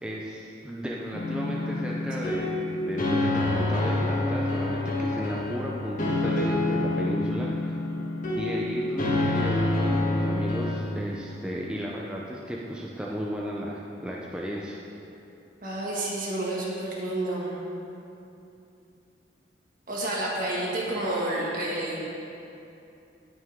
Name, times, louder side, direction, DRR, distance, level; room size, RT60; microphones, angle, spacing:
voice 1, 0.0-7.7 8.3-14.8, equal, 5° right, -4 dB, 0.6 m, -34 dB
sound 1, 1.1-10.7, left 2 dB, 45° left, 1.5 m, -27 dB
voice 2, 15.6-17.6 19.9-22.0, right 1 dB, 50° right, -4 dB, 2.0 m, -29 dB
18.5 x 6.2 x 3.7 m, 2.8 s
head